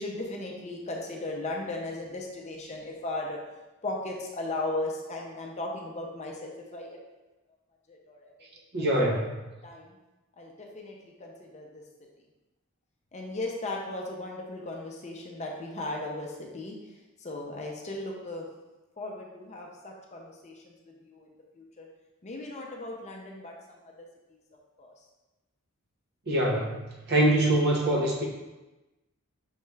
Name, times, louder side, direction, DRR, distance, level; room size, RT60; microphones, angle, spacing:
voice 1, 0.0-3.4 3.8-7.0 7.9-8.3 9.6-9.9 10.4-11.8 13.1-16.8 17.2-18.5 19.0-20.7 21.0-21.3 21.6-21.9 22.2-24.4 24.8-24.9, left 2 dB, 30° left, 0 dB, 0.5 m, -37 dB
voice 2, 8.7-9.3 26.3-26.8 27.1-28.2, right 1 dB, 50° right, -2 dB, 0.7 m, -24 dB
5.4 x 2.4 x 3.1 m, 1.1 s
head